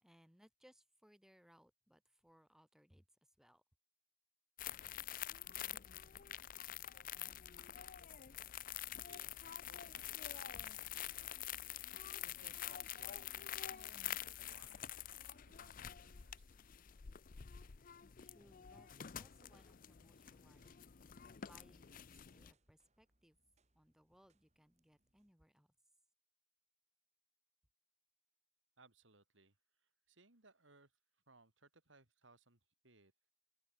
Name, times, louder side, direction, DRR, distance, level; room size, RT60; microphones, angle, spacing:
voice 1, 0.0-3.0 3.4-3.6 18.3-20.8 21.4-23.4 23.8-25.7, equal, 5° right, 1.9 m, -68 dB
sound 1, 4.6-22.5, left 11 dB, 45° left, 0.5 m, -47 dB
voice 2, 9.0-11.5 12.2-16.6 28.8-30.9 31.3-33.3, right 3 dB, 75° right, 4.1 m, -67 dB
sound 2, 14.9-25.3, right 2 dB, 35° right, 4.9 m, -85 dB
open air
head